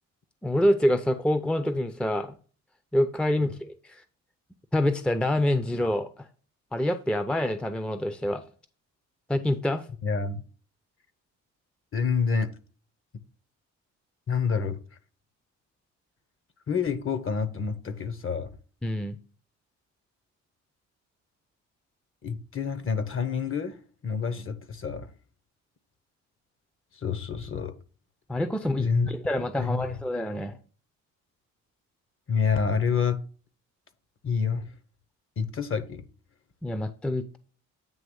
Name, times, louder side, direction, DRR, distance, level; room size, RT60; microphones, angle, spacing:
voice 1, 0.4-2.3 2.9-4.0 4.7-6.3 6.7-8.4 9.3-9.9 18.8-19.2 28.3-30.5 36.6-37.4, left 1 dB, 5° left, 0.6 m, -26 dB
voice 2, 10.0-10.4 11.9-12.5 14.3-14.8 16.7-18.5 22.2-25.1 26.9-27.7 28.8-29.1 29.6-30.0 32.3-33.2 34.2-34.7 35.4-36.0, left 5 dB, 45° left, 1.1 m, -28 dB
9.0 x 3.1 x 6.3 m
cardioid pair, 90°, 30 cm